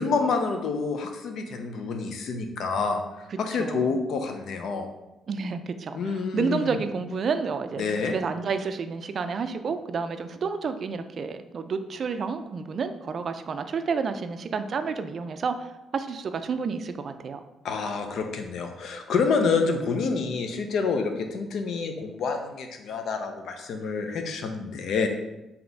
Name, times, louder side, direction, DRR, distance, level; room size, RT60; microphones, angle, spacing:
voice 1, 0.0-4.9 5.9-6.7 7.8-8.2 17.6-25.1, left 4 dB, 70° left, 5 dB, 0.5 m, -28 dB
voice 2, 5.3-15.7 15.9-17.4 19.4-19.5, right 5 dB, 50° right, 9 dB, 0.3 m, -30 dB
3.9 x 2.8 x 3.4 m, 0.97 s
cardioid pair, 90°, 0 cm